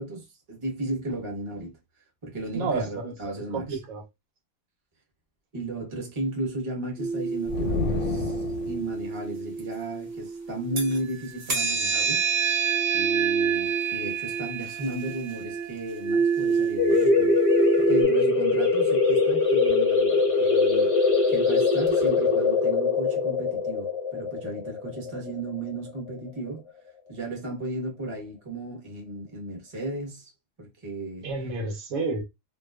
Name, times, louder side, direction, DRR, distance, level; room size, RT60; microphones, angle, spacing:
voice 1, 0.0-1.8 2.2-3.8 5.5-12.2 12.9-17.4 17.9-26.7 27.1-30.3 30.6-31.3, right 2 dB, 25° right, 0.8 m, -35 dB
voice 2, 2.5-3.1 3.5-4.0 31.2-32.2, right 3 dB, 80° right, 1.1 m, -30 dB
sound 1, 7.0-11.0 11.4-18.0, right 6 dB, 50° right, 0.9 m, -27 dB
sound 2, 7.5-9.0, left 4 dB, 90° left, 1.1 m, -30 dB
sound 3, 16.8-26.1, left 4 dB, 40° left, 0.5 m, -22 dB
2.5 x 2.2 x 2.2 m
omnidirectional pair, 1.5 m